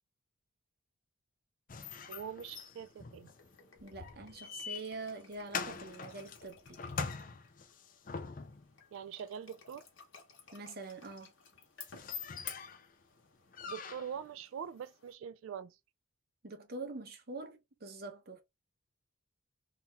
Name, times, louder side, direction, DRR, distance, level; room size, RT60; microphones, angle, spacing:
sound 1, 1.7-8.7 11.1-11.2 11.6-11.7 11.8-12.9 13.5-14.3, left 5 dB, 40° left, 0.4 m, -43 dB
voice 1, 2.1-3.3 8.9-9.8 13.7-15.8, right 8 dB, 75° right, 0.3 m, -43 dB
sound 2, 2.5-15.1, left 7 dB, 75° left, 1.2 m, -56 dB
voice 2, 3.8-6.8 10.5-11.3 16.4-18.4, right 3 dB, 50° right, 0.8 m, -45 dB
2.9 x 2.9 x 3.4 m
head